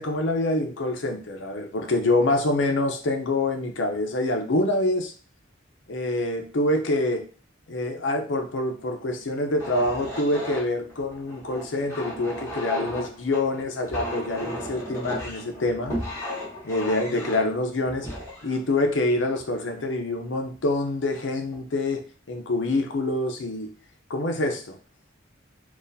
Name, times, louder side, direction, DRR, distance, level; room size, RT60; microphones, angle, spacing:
voice 1, 0.0-5.1 5.9-7.3 7.7-16.0 16.6-18.1 18.4-23.7 24.1-24.8, left 2 dB, 80° left, 4 dB, 0.7 m, -26 dB
sound 1, 9.5-19.8 20.5-20.7 21.1-21.6, equal, 15° left, 1.4 m, -35 dB
4.0 x 2.4 x 2.7 m, 0.38 s
head